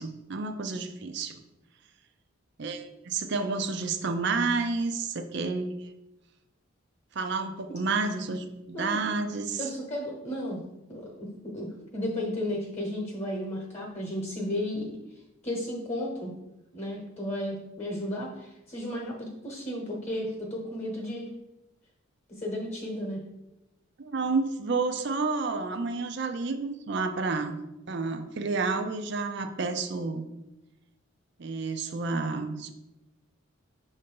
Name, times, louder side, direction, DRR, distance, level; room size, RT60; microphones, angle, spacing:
voice 1, 0.0-1.4 2.6-5.9 7.1-9.7 24.0-27.6 27.9-30.3 31.4-32.7, right 4 dB, 55° right, 6 dB, 0.5 m, -30 dB
voice 2, 9.6-10.6 10.9-11.7 11.9-15.0 15.4-16.3 16.7-21.3 22.3-23.2, left 1 dB, 30° left, -1 dB, 1.0 m, -33 dB
6.6 x 2.7 x 5.3 m, 0.94 s
head